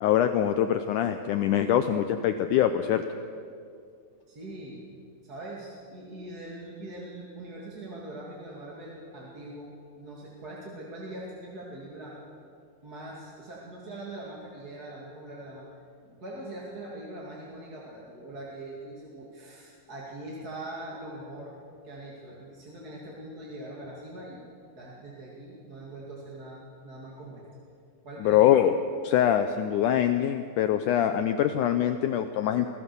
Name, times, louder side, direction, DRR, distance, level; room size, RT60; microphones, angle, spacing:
voice 1, 0.0-3.0 28.2-28.7 29.0-32.7, left 10 dB, 80° left, 9 dB, 1.8 m, -24 dB
voice 2, 4.3-4.8 5.2-9.7 10.0-12.2 12.8-15.6 16.0-21.5 21.8-24.5 24.7-27.4 28.0-28.4, right 1 dB, 30° right, -4 dB, 2.4 m, -42 dB
23.0 x 16.0 x 7.0 m, 2.4 s
omnidirectional pair, 4.4 m